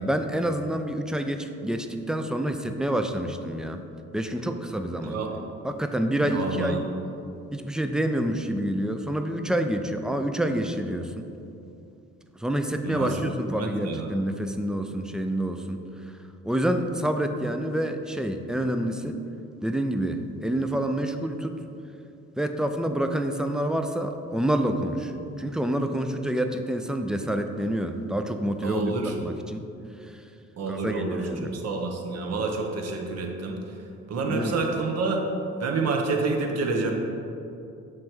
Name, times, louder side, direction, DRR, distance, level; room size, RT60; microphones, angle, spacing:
voice 1, 0.0-3.8 4.1-5.2 5.6-6.9 7.5-11.3 12.4-16.1 16.4-19.2 19.6-21.5 22.4-25.1 25.4-28.9 29.2-29.7 30.0-30.1 30.7-31.5 34.3-34.5, right 1 dB, ahead, 6 dB, 0.3 m, -27 dB
voice 2, 5.0-5.3 6.2-6.8 12.8-13.2 13.6-14.1 28.6-29.2 30.6-33.8 34.1-35.2 35.6-36.9, right 3 dB, 55° right, 2 dB, 0.9 m, -28 dB
7.4 x 3.2 x 4.4 m, 2.7 s
cardioid pair, 90°, 30 cm